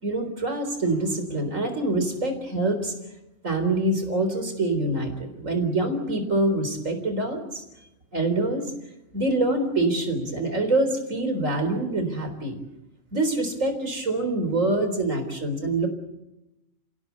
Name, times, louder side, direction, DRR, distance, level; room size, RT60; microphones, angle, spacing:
voice 1, 0.0-2.9 3.4-7.6 8.1-8.6 9.1-12.6 13.1-15.9, right 2 dB, 80° right, 7 dB, 4.4 m, -25 dB
28.5 x 16.5 x 8.4 m, 0.95 s
omnidirectional pair, 1.3 m